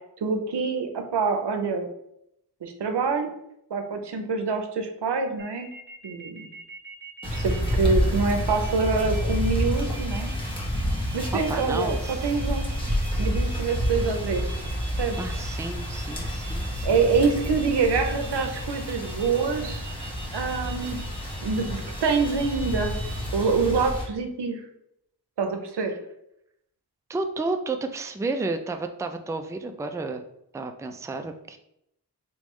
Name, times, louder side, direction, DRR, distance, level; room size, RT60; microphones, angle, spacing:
voice 1, 0.2-1.9 2.6-3.3 3.7-5.7 6.0-6.5 7.3-10.3 11.1-12.7 13.2-14.4 15.0-15.2 16.8-19.8 20.3-21.1 21.4-23.0 23.3-24.6 25.4-25.9, right 4 dB, 90° right, 5 dB, 0.6 m, -26 dB
sound 1, 5.4-23.3, right 3 dB, 25° right, 0.8 m, -45 dB
sound 2, 7.2-24.0, equal, 15° left, 1.3 m, -29 dB
voice 2, 11.5-12.3 15.2-17.0 27.1-30.2 30.5-31.6, right 3 dB, 10° right, 6 dB, 0.3 m, -32 dB
3.6 x 3.1 x 3.1 m, 0.77 s
wide cardioid pair, 55°, 40 cm